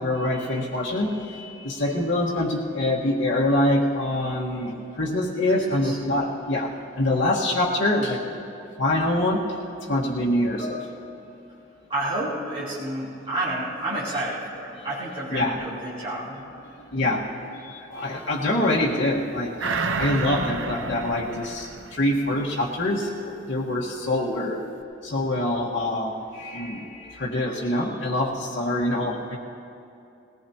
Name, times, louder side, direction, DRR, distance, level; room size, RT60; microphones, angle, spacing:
voice 1, 0.0-8.4 8.8-9.5 9.8-10.9 14.8-14.9 15.3-15.6 16.9-19.6 20.0-24.6 25.0-29.4, left 1 dB, 80° left, -6 dB, 1.5 m, -25 dB
voice 2, 5.5-6.0 11.9-16.4, right 1 dB, 30° right, -11 dB, 3.3 m, -30 dB
sound 1, 19.6-22.5 22.9-23.0, right 4 dB, 80° right, 0.7 m, -30 dB
20.0 x 18.5 x 2.9 m, 2.7 s
head